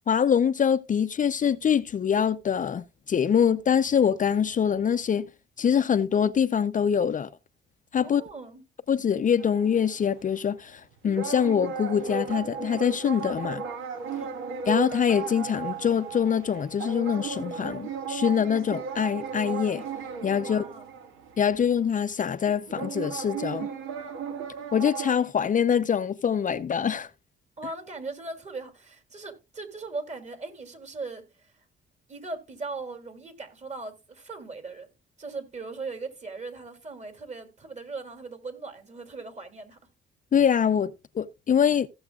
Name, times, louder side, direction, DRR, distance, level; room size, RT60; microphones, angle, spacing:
voice 1, 0.1-5.3 5.6-7.3 7.9-8.2 8.9-13.6 14.7-19.8 20.2-20.6 21.4-23.7 24.7-27.1 40.3-41.9, left 8 dB, 40° left, 0.6 m, -24 dB
voice 2, 8.0-8.6 14.1-14.4 20.4-20.9 27.6-31.6 32.1-34.9 35.2-39.8, right 3 dB, 35° right, 2.9 m, -39 dB
sound 1, 9.4-10.4 10.9-21.8 22.7-25.1, right 5 dB, 85° right, 1.8 m, -35 dB
16.0 x 7.1 x 2.4 m
cardioid pair, 90°, 20 cm